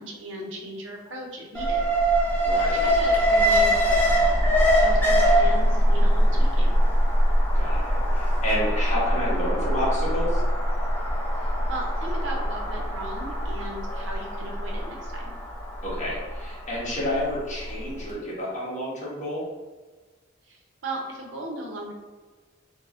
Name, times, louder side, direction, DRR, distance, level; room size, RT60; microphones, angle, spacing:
voice 1, 0.0-1.9 2.7-4.4 4.7-6.8 11.4-15.3 20.5-21.9, right 1 dB, 75° right, 0 dB, 0.6 m, -37 dB
Alarm, 1.5-17.7 18.0-18.1, equal, 10° left, 0.4 m, -22 dB
voice 2, 2.4-2.8 7.5-10.4 15.8-19.4, left 1 dB, 35° left, -6 dB, 0.9 m, -30 dB
4.1 x 2.0 x 2.4 m, 1.3 s
head